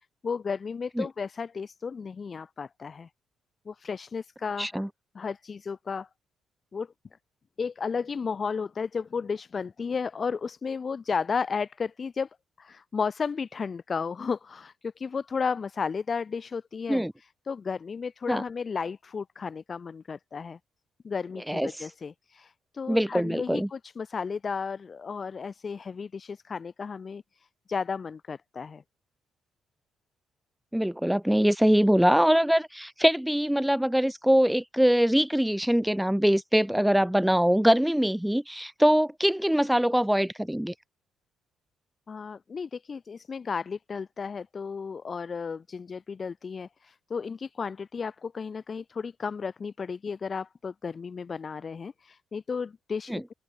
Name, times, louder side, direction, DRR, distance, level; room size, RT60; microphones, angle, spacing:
voice 1, 0.2-3.1 3.7-4.7 5.1-6.1 6.7-6.9 7.6-12.3 12.6-20.6 21.0-28.8 42.1-53.3, left 5 dB, 40° left, 1.0 m, -33 dB
voice 2, 4.6-4.9 16.9-17.1 18.3-18.4 21.5-21.9 22.9-23.7 30.7-40.7 53.1-53.2, equal, 5° right, 0.9 m, -23 dB
open air
cardioid pair, 90°, 0 cm